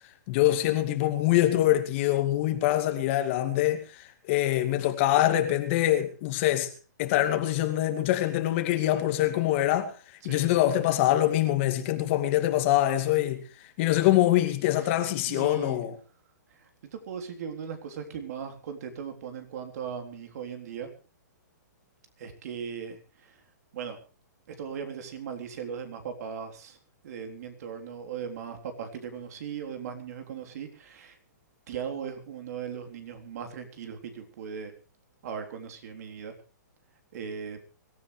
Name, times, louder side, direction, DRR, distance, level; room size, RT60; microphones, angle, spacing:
voice 1, 0.3-3.8 4.3-6.7 7.0-9.9 10.2-13.4 13.8-15.9, left 14 dB, 40° left, 2.3 m, -24 dB
voice 2, 15.3-15.8 16.9-20.9 22.2-23.4 23.7-24.0 24.5-26.8 27.0-31.2 31.7-34.7 35.2-36.3 37.1-37.6, right 7 dB, 55° right, 3.8 m, -38 dB
24.5 x 14.0 x 3.3 m
hypercardioid pair, 145°, 10 cm